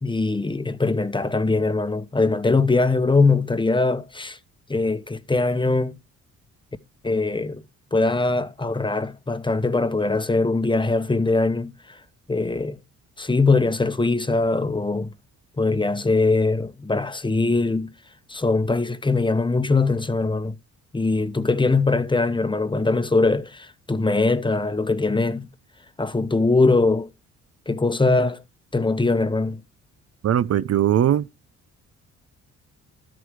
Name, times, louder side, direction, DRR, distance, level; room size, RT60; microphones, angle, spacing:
voice 1, 0.0-4.4 4.7-5.9 7.0-7.6 7.9-12.0 12.3-12.8 13.2-15.1 15.6-17.9 18.3-20.5 20.9-25.5 26.0-27.1 27.7-28.4 28.7-29.6, left 3 dB, 15° left, 1.0 m, -22 dB
voice 2, 30.2-31.3, right 10 dB, 55° right, 0.7 m, -20 dB
13.0 x 8.2 x 4.8 m
cardioid pair, 90°, 30 cm